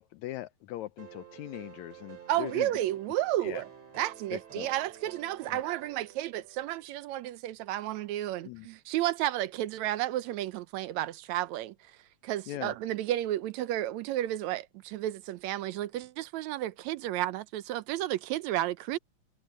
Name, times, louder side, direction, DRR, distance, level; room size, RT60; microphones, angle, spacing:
voice 1, 0.0-2.7 3.4-3.6 4.3-4.7 5.5-5.6 8.4-8.7 12.5-12.7, left 15 dB, 80° left, 1.9 m, -40 dB
sound 1, 1.0-6.9, right 8 dB, 55° right, 4.6 m, -51 dB
voice 2, 2.3-3.7 4.0-11.7 12.2-19.0, right 14 dB, 75° right, 1.9 m, -32 dB
omnidirectional pair, 3.5 m